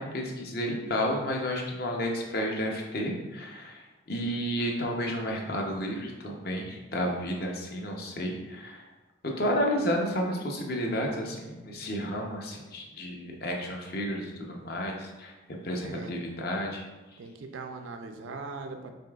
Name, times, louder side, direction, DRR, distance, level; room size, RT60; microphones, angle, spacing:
voice 1, 0.0-8.9 9.4-15.3 15.6-16.9, equal, 50° left, 0 dB, 0.7 m, -31 dB
voice 2, 15.8-16.1 17.2-18.9, right 3 dB, 80° right, 6 dB, 0.4 m, -40 dB
5.2 x 3.3 x 2.3 m, 1.2 s
head